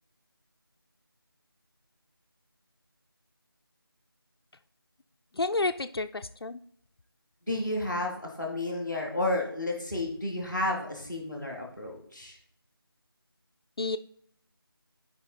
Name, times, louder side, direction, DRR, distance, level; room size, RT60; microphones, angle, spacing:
voice 1, 5.3-6.6 13.8-14.0, left 3 dB, 75° left, 7 dB, 0.6 m, -30 dB
voice 2, 7.5-12.4, left 2 dB, 5° right, -10 dB, 1.5 m, -31 dB
11.5 x 5.3 x 4.0 m, 0.68 s
figure-of-eight pair, 175°, 13 cm